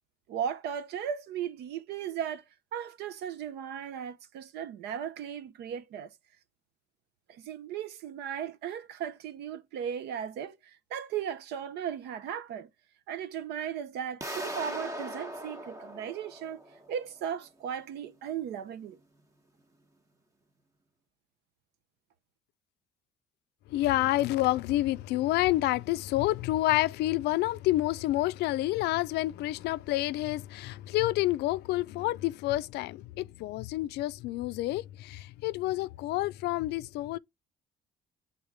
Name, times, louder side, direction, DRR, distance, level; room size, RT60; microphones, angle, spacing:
voice 1, 0.3-2.4 2.7-6.1 7.3-12.7 13.1-16.6 16.9-19.0, right 8 dB, 80° right, 0.9 m, -36 dB
sound 1, 14.2-17.0, equal, 20° right, 1.0 m, -39 dB
voice 2, 23.7-37.2, left 16 dB, 80° left, 0.5 m, -28 dB
8.1 x 3.8 x 3.5 m
cardioid pair, 110°, 17 cm